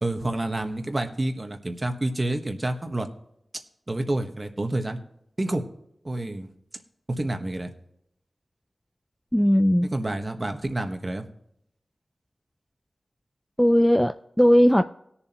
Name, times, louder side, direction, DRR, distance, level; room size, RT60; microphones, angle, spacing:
voice 1, 0.0-3.1 3.9-5.0 5.4-5.6 6.0-6.5 7.2-7.7 9.8-11.2, right 1 dB, 30° right, 5 dB, 1.2 m, -28 dB
voice 2, 9.3-9.9 13.6-14.8, equal, 5° left, 8 dB, 0.3 m, -18 dB
19.5 x 7.0 x 2.9 m, 0.75 s
wide cardioid pair, 100°, 0 cm